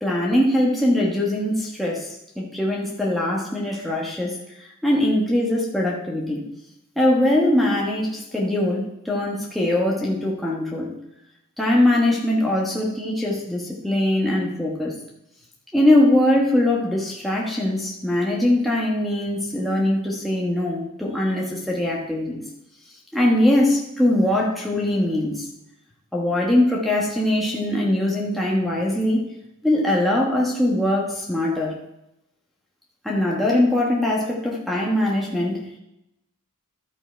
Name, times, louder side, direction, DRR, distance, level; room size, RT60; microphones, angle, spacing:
voice 1, 0.0-2.1 2.4-4.4 4.8-6.4 7.0-10.9 11.6-14.9 15.7-22.4 23.1-25.4 26.1-29.2 29.6-31.8 33.0-35.7, left 1 dB, ahead, -4 dB, 1.3 m, -21 dB
12.5 x 5.9 x 4.5 m, 0.86 s
head